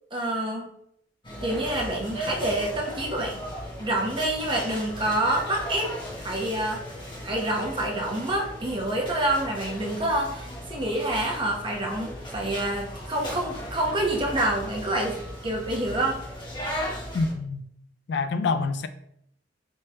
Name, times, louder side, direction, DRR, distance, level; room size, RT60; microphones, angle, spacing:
voice 1, 0.1-0.7 1.4-3.5 3.8-5.9 6.2-6.8 7.2-15.2 15.4-16.2, right 1 dB, 30° right, 0.9 m, -27 dB
sound 1, 1.2-17.3, equal, 25° left, 1.2 m, -37 dB
voice 2, 17.1-17.6 18.1-18.9, left 4 dB, 70° left, 0.3 m, -26 dB
3.5 x 3.2 x 4.2 m
head